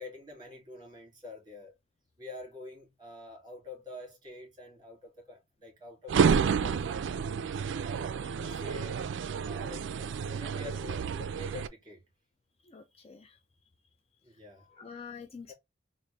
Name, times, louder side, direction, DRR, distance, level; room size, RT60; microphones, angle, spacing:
voice 1, 0.0-1.7 2.2-7.7 8.4-9.1 9.4-12.0 14.2-14.9 15.5-15.6, left 2 dB, 25° right, 2.3 m, -47 dB
sound 1, 6.1-11.7, right 6 dB, 65° right, 0.3 m, -30 dB
voice 2, 8.2-8.7 11.4-11.5 12.6-13.4 14.6-15.5, left 6 dB, 30° left, 0.4 m, -48 dB
3.9 x 2.5 x 3.2 m
head